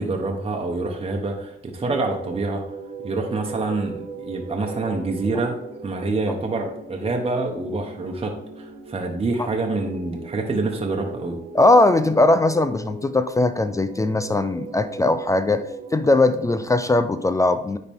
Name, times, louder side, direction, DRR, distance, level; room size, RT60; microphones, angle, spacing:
voice 1, 0.0-2.6 3.0-5.5 5.8-11.4, right 3 dB, 30° right, 1 dB, 1.2 m, -26 dB
sound 1, 1.7-16.7, right 4 dB, 70° right, 1.5 m, -38 dB
voice 2, 11.5-15.6 15.9-17.8, left 2 dB, 15° left, 11 dB, 0.4 m, -19 dB
10.0 x 4.0 x 3.6 m, 0.77 s
cardioid pair, 90°, 20 cm